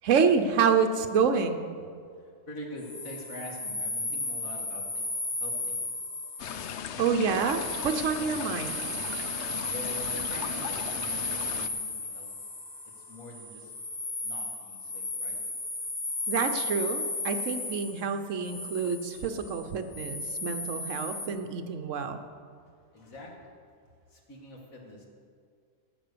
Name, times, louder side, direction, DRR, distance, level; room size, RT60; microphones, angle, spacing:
voice 1, 0.0-1.7 6.5-8.8 16.3-22.2, right 6 dB, 70° right, 8 dB, 1.1 m, -28 dB
voice 2, 2.5-5.1 5.4-5.8 7.0-7.2 9.7-12.3 13.1-13.7 14.2-15.4 22.9-23.5 24.1-25.1, left 1 dB, 90° left, -1 dB, 2.4 m, -44 dB
sound 1, 2.8-21.3, left 2 dB, 20° left, 1.2 m, -35 dB
sound 2, 6.4-11.7, left 8 dB, 65° left, 0.8 m, -38 dB
17.0 x 6.1 x 6.8 m, 2.2 s
omnidirectional pair, 1.4 m